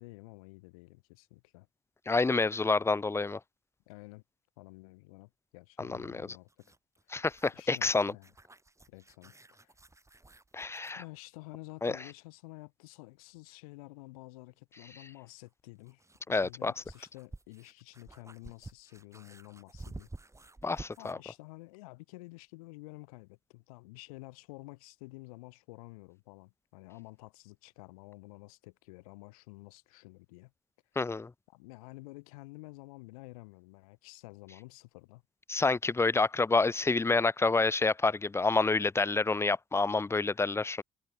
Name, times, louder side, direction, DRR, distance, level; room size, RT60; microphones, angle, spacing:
voice 1, 0.0-1.7 3.9-4.2 4.6-6.8 7.1-7.3 7.5-8.3 8.9-9.7 10.9-20.1 21.0-30.5 31.5-35.2, left 24 dB, 75° left, 2.4 m, -50 dB
voice 2, 2.1-3.4 5.8-6.3 7.1-8.1 10.5-11.0 11.8-11.9 16.3-16.7 20.6-21.2 31.0-31.3 35.5-40.8, left 3 dB, 15° left, 0.5 m, -28 dB
sound 1, 6.5-11.0 13.4-13.5 15.5-21.3, right 2 dB, 15° right, 2.5 m, -51 dB
figure-of-eight pair, 45°, 19 cm